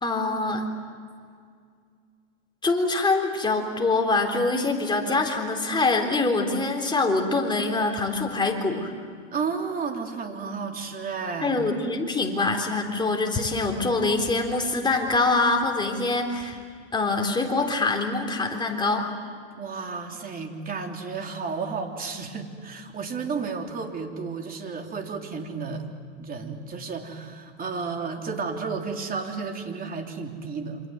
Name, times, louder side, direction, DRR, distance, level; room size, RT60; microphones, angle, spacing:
voice 1, 0.0-0.6 2.6-8.9 11.4-16.6 16.9-19.1, left 3 dB, 10° left, 2 dB, 3.8 m, -24 dB
voice 2, 9.3-11.6 19.6-25.9 26.2-30.8, right 5 dB, 25° right, 3 dB, 3.5 m, -32 dB
28.0 x 26.5 x 7.9 m, 2.1 s
hypercardioid pair, 120°, 37 cm